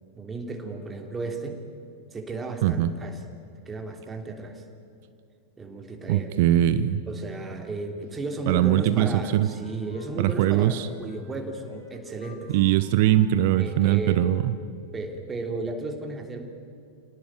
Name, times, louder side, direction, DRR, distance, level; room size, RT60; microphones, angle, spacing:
voice 1, 0.1-1.6 2.1-3.2 3.6-4.6 5.6-6.3 7.1-12.5 13.6-14.3 14.9-16.4, right 2 dB, 15° right, 4 dB, 3.2 m, -34 dB
voice 2, 6.1-7.0 8.5-9.5 10.2-10.9 12.5-14.5, right 13 dB, 50° right, 14 dB, 0.8 m, -21 dB
Wind instrument woodwind instrument, 8.8-14.8, left 3 dB, 70° left, 6.3 m, -48 dB
28.5 x 18.5 x 9.1 m, 2.6 s
figure-of-eight pair, 90°, 0 cm